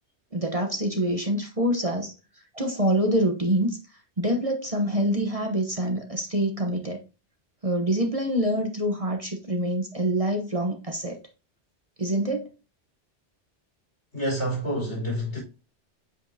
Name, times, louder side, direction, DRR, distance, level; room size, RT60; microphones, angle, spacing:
voice 1, 0.3-2.1 2.5-3.8 4.2-7.0 7.6-11.2 12.0-12.5, right 1 dB, 30° right, 1.1 m, -26 dB
voice 2, 14.1-15.4, equal, 75° left, 4.9 m, -28 dB
8.3 x 5.4 x 2.7 m
omnidirectional pair, 1.2 m